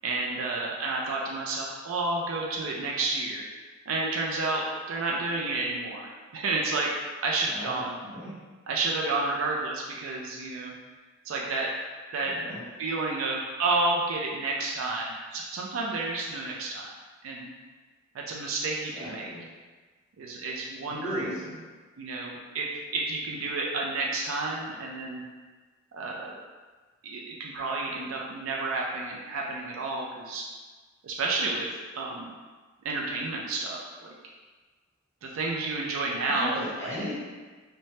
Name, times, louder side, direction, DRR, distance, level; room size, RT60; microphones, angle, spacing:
voice 1, 0.0-3.4 3.9-6.9 7.2-8.0 8.7-10.7 11.2-11.7 12.1-12.3 12.8-16.9 17.2-17.5 18.1-19.3 20.2-21.4 22.0-25.2 25.9-26.4 27.0-30.4 31.0-32.3 32.8-34.1 35.2-36.9, right 3 dB, 85° right, -2 dB, 0.4 m, -30 dB
voice 2, 7.5-8.3 12.2-12.6 18.8-19.4 20.9-21.6 36.2-37.2, equal, 15° left, -11 dB, 1.0 m, -37 dB
3.1 x 2.1 x 2.7 m, 1.3 s
head